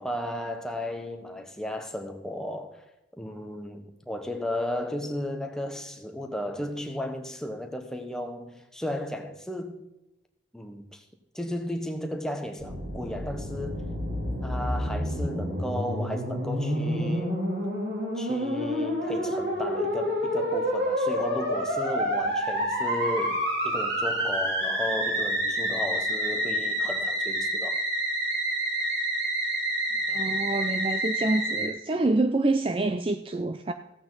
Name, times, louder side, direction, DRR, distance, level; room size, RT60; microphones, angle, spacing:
voice 1, 0.0-2.8 3.2-9.8 10.5-11.0 11.3-13.9 14.4-17.4 18.1-27.8, left 1 dB, 5° left, 1.0 m, -34 dB
Musical instrument, 12.6-31.7, equal, 70° right, 4.0 m, -28 dB
voice 2, 30.1-33.7, right 2 dB, 30° right, 0.4 m, -26 dB
15.0 x 8.6 x 4.0 m
head